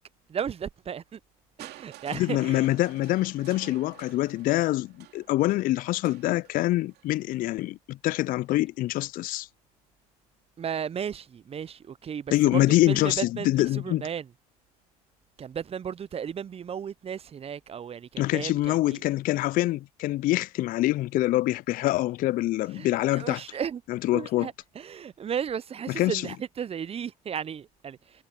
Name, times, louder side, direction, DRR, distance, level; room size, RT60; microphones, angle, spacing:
voice 1, 0.3-1.2 1.6-2.7 10.6-14.3 15.4-19.0 22.8-22.9 23.1-23.8 24.1-28.0, right 8 dB, 30° right, 0.7 m, -34 dB
Crushing, 1.6-7.5 8.5-8.6, right 15 dB, 60° right, 2.7 m, -51 dB
voice 2, 2.1-9.5 12.3-14.0 18.2-23.4 23.9-24.5 25.9-26.3, left 16 dB, 45° left, 0.4 m, -25 dB
hypercardioid pair, 70°, 19 cm